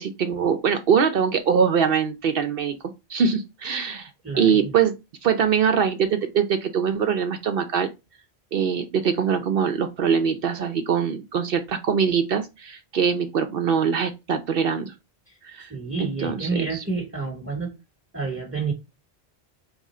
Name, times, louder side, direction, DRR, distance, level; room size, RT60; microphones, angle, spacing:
voice 1, 0.0-2.8 3.1-4.1 4.4-4.9 5.2-7.9 8.5-14.9 15.4-15.7 16.0-16.8, right 7 dB, 65° right, 0.8 m, -23 dB
voice 2, 4.2-4.7 15.7-17.7 18.1-18.7, right 4 dB, 15° right, 0.9 m, -29 dB
3.6 x 3.3 x 4.2 m
omnidirectional pair, 1.1 m